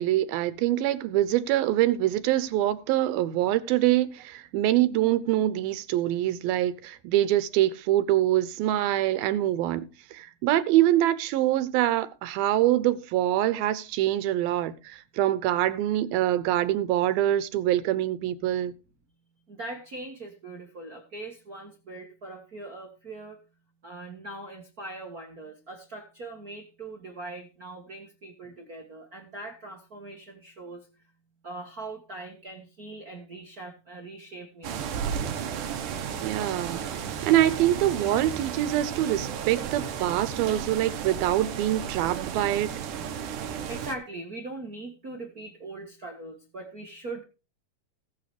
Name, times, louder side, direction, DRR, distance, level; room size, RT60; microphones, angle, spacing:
voice 1, 0.0-18.7 36.2-36.8 37.2-42.7, right 13 dB, 85° right, 2.7 m, -25 dB
voice 2, 19.5-23.4 23.8-30.9 31.4-35.0 43.7-47.2, right 2 dB, 50° right, 1.1 m, -41 dB
sound 1, 34.6-44.0, right 8 dB, 65° right, 2.6 m, -33 dB
19.0 x 7.1 x 3.3 m
omnidirectional pair, 4.2 m